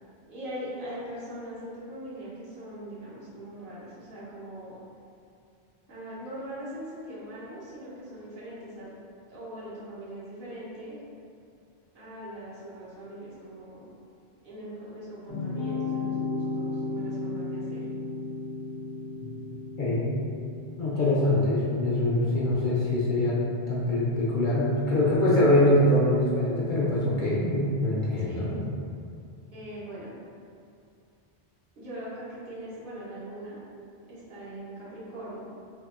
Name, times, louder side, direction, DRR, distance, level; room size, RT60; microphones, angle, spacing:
voice 1, 0.3-4.8 5.9-8.9 9.3-11.0 11.9-13.9 14.4-17.8 28.2-28.6 29.5-30.1 31.8-33.6 34.1-35.5, right 1 dB, 60° right, -10 dB, 1.0 m, -41 dB
sound 1, 15.3-20.8, left 3 dB, 85° left, 0.9 m, -33 dB
voice 2, 19.8-20.1 20.8-23.4 23.7-28.6, left 1 dB, 55° left, -7 dB, 0.7 m, -24 dB
2.7 x 2.4 x 2.4 m, 2.5 s
omnidirectional pair, 1.0 m